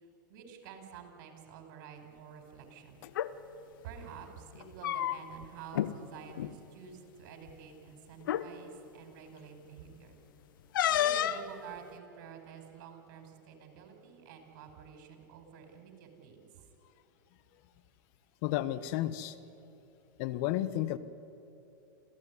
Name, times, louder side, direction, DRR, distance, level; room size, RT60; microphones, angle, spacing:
voice 1, 0.3-3.1 3.8-10.2 10.9-16.5, right 7 dB, 60° right, 4 dB, 5.1 m, -49 dB
sound 1, 3.0-3.3 4.5-5.4 5.7-5.9 6.3-6.5 7.5-7.6 8.2-8.5 10.7-11.5, left 11 dB, 75° left, 1.1 m, -30 dB
voice 2, 18.4-19.4 20.2-21.0, left 14 dB, 55° left, 13 dB, 1.4 m, -32 dB
28.0 x 15.5 x 9.8 m, 3.0 s
hypercardioid pair, 105°, 11 cm